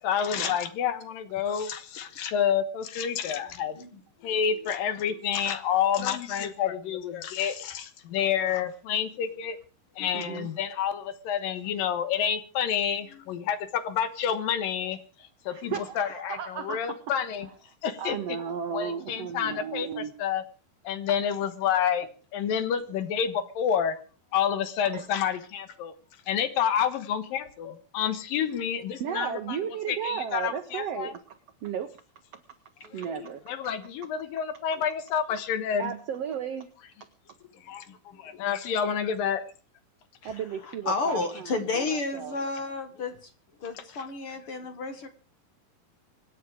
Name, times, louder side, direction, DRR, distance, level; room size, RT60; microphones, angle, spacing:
voice 1, 0.0-3.8 4.2-9.6 10.0-17.5 17.8-18.4 18.7-20.4 20.8-24.0 24.3-25.9 26.3-29.6 29.9-31.1 33.5-35.9 37.6-37.9 38.2-39.4 43.7-44.1, left 8 dB, 70° left, 2.9 m, -29 dB
voice 2, 10.1-10.5 15.5-17.0 18.0-20.1 24.8-25.1 29.0-31.9 32.3-32.4 32.9-33.4 35.8-36.7 40.2-42.4, right 8 dB, 85° right, 1.3 m, -34 dB
voice 3, 32.8-33.2 38.3-38.4 40.9-43.3 43.6-45.1, left 3 dB, 50° left, 1.8 m, -31 dB
25.0 x 9.4 x 5.0 m
omnidirectional pair, 4.4 m